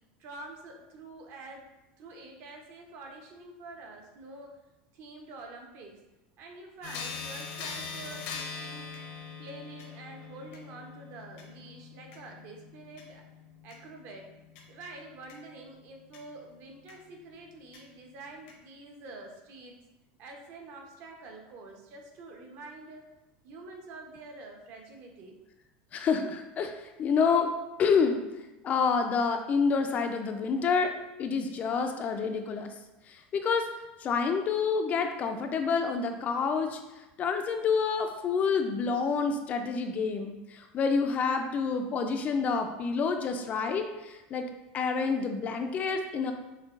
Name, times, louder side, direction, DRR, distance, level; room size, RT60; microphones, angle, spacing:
voice 1, 0.2-1.6 2.0-4.6 4.9-6.0 6.4-9.0 9.4-13.2 13.6-14.3 14.7-19.8 20.2-23.1 23.4-25.4, right 2 dB, 55° right, 2 dB, 0.7 m, -47 dB
sound 1, 6.8-16.2 16.9-17.0 17.7-17.8 18.5-18.6, left 5 dB, 65° left, 0.6 m, -43 dB
voice 2, 25.9-27.5 27.8-28.2 28.6-30.9 31.2-32.7 33.1-33.6 34.0-36.8 37.2-44.4 44.7-46.3, left 5 dB, 30° left, 6 dB, 0.3 m, -28 dB
6.3 x 2.2 x 2.4 m, 1.0 s
supercardioid pair, 140°, 5 cm